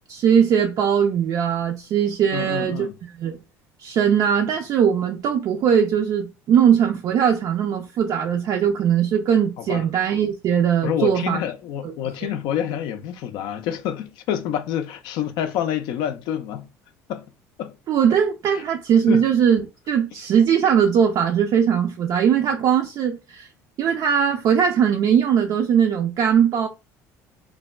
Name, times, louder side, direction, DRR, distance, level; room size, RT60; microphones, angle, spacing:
voice 1, 0.1-2.9 3.2-3.4 3.8-11.4 11.8-11.9 12.2-12.3 17.9-23.5 23.8-26.7, right 8 dB, 55° right, 0.4 m, -20 dB
voice 2, 2.3-3.0 9.6-9.9 10.8-16.7 17.1-17.2 17.6-17.7 18.5-18.6 19.1-19.2, left 9 dB, 70° left, 0.4 m, -27 dB
3.2 x 2.1 x 2.2 m
supercardioid pair, 80°, 8 cm